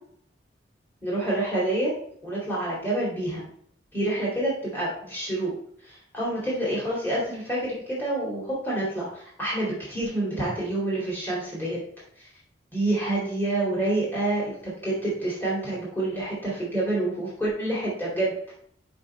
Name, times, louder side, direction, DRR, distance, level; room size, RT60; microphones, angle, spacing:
voice 1, 1.0-1.9 2.2-3.5 3.9-5.5 5.8-11.8 12.2-12.3 12.7-18.4, right 1 dB, 10° left, -7 dB, 2.5 m, -28 dB
6.0 x 5.3 x 4.3 m, 0.63 s
head